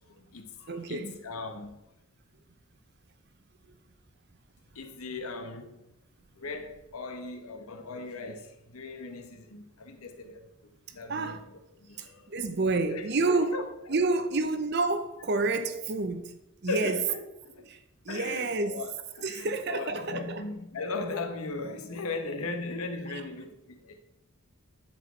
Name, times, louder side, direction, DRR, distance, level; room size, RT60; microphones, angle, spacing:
voice 1, 0.1-1.8 4.7-5.8 6.4-12.3 12.8-13.6 16.7-17.7 18.1-24.0, left 3 dB, 85° left, 1.1 m, -38 dB
voice 2, 0.7-1.2 11.1-11.4 12.0-13.6 13.9-17.0 17.7-17.8 18.0-18.8 19.2-20.4, right 3 dB, 50° right, 0.7 m, -29 dB
9.9 x 4.5 x 4.5 m
head